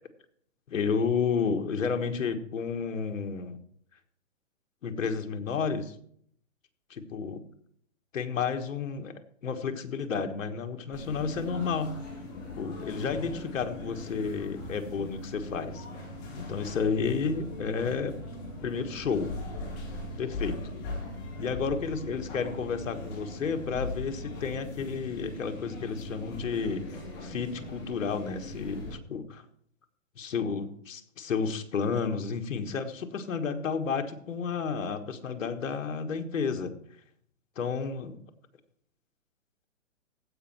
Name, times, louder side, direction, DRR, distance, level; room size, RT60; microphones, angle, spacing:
voice 1, 0.7-3.6 4.8-5.9 6.9-7.4 8.1-12.0 12.6-15.8 16.3-18.2 18.6-19.3 20.2-20.6 21.4-29.4 30.2-36.7 37.6-38.2, left 5 dB, 80° left, 6 dB, 1.6 m, -31 dB
sound 1, 10.9-28.9, left 2 dB, 30° left, 5.2 m, -40 dB
15.5 x 5.5 x 4.3 m, 0.63 s
hypercardioid pair, 165°, 39 cm